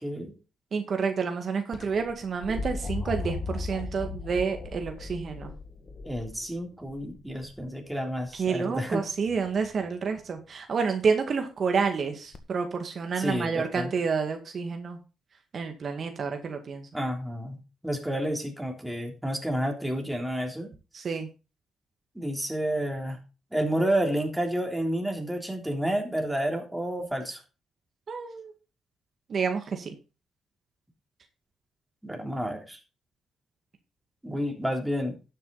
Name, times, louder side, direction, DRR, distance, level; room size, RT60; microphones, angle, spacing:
voice 1, 0.0-0.4 6.1-9.1 13.2-13.9 16.9-17.6 17.8-20.7 22.2-23.2 23.5-27.4 32.0-32.8 34.2-35.2, equal, 5° right, 2 dB, 3.5 m, -30 dB
voice 2, 0.7-5.5 8.3-15.0 15.5-16.9 20.9-21.3 28.1-28.5 29.3-29.9, right 5 dB, 55° right, 5 dB, 1.9 m, -29 dB
sound 1, 1.7-7.7 9.3-9.8 12.3-12.4, left 3 dB, 50° left, 1.8 m, -37 dB
12.5 x 7.6 x 4.0 m, 0.31 s
supercardioid pair, 65°, 0 cm